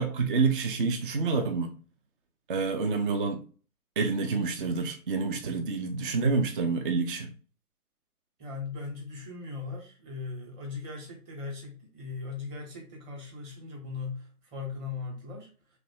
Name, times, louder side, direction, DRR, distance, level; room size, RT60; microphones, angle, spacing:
voice 1, 0.0-1.8 2.5-3.4 4.0-7.3, right 4 dB, 35° right, 0.5 m, -28 dB
voice 2, 8.4-15.8, left 4 dB, 20° right, 1.1 m, -39 dB
3.1 x 2.6 x 4.4 m
figure-of-eight pair, 135°, 46 cm